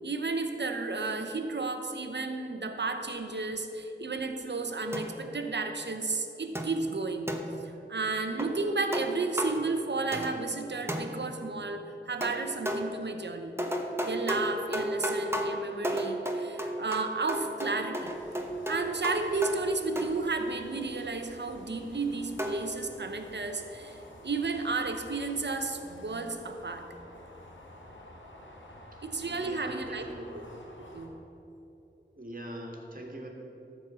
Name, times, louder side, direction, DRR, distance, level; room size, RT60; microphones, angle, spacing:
voice 1, 0.0-7.3 7.9-13.5 14.0-18.1 18.7-26.9 29.0-30.0 30.3-30.4 30.9-31.2, right 3 dB, 65° right, 6 dB, 0.9 m, -33 dB
sound 1, 4.9-5.4 6.5-7.8 8.4-8.6 8.9-9.7 10.1-10.6 10.9-11.4 12.2-13.0 13.6-20.4 22.4-22.7, equal, 10° right, 1.1 m, -34 dB
sound 2, 18.0-31.1, left 1 dB, 80° left, 1.6 m, -51 dB
voice 2, 29.3-30.3 32.2-33.3, right 1 dB, 45° right, 0 dB, 1.8 m, -42 dB
13.0 x 4.6 x 7.6 m, 3.0 s
wide cardioid pair, 50°, 19 cm